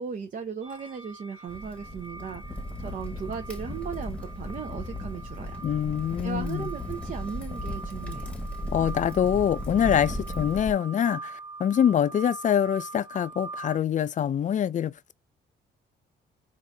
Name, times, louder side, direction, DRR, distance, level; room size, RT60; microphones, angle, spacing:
voice 1, 0.0-5.6 6.2-8.4, right 6 dB, 45° right, 0.6 m, -37 dB
sound 1, 0.6-13.8, right 3 dB, 25° right, 1.4 m, -43 dB
Crackle, 1.5-10.7, left 1 dB, 5° left, 1.1 m, -36 dB
voice 2, 5.6-6.7 8.7-15.1, left 9 dB, 40° left, 0.4 m, -25 dB
3.8 x 2.6 x 3.4 m
cardioid pair, 90°, 20 cm